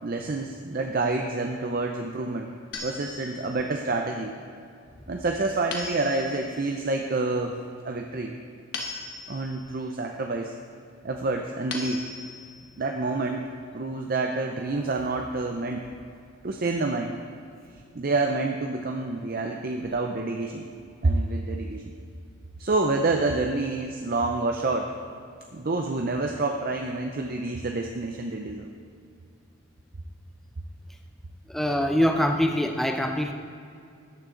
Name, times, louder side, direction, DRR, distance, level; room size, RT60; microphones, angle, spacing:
voice 1, 0.0-2.5 2.8-4.4 5.1-7.6 7.8-8.4 9.3-10.5 11.0-12.1 12.8-13.5 13.7-15.8 16.4-17.2 18.0-20.7 21.0-21.9 22.6-24.9 25.5-28.7, right 3 dB, 45° right, 3 dB, 0.6 m, -28 dB
sound 1, 2.7-3.7 5.7-6.6 8.7-9.6 11.7-12.6, left 3 dB, 55° left, 1.3 m, -37 dB
voice 2, 31.5-33.3, equal, ahead, 4 dB, 0.4 m, -24 dB
14.0 x 9.5 x 3.8 m, 2.4 s
head